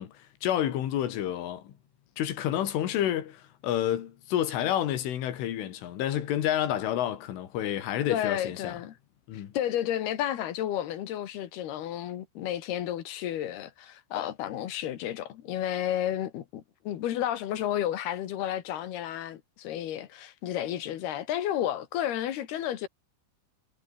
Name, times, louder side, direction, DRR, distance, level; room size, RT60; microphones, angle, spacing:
voice 1, 0.0-1.7 2.2-8.8 9.3-9.5, left 11 dB, 85° left, 4.9 m, -29 dB
voice 2, 8.1-9.0 9.3-22.9, left 11 dB, 65° left, 3.3 m, -32 dB
omnidirectional pair, 5.5 m